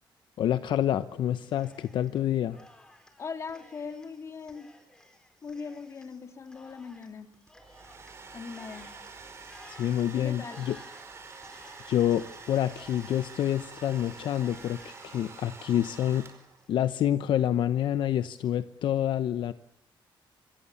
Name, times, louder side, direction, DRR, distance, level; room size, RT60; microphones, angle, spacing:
voice 1, 0.4-2.6 9.7-10.8 11.9-16.3 16.7-19.5, left 11 dB, 60° left, 12 dB, 0.9 m, -27 dB
Cheering, 1.4-2.2 2.5-17.0, left 1 dB, 10° left, 4.0 m, -56 dB
voice 2, 3.2-4.7 5.4-7.3 8.3-8.9 10.1-10.7, left 5 dB, 30° left, 7 dB, 3.1 m, -40 dB
Domestic sounds home sounds, 7.5-16.7, right 4 dB, 30° right, 4.8 m, -47 dB
26.5 x 25.5 x 7.3 m, 0.78 s
cardioid pair, 180°, 9 cm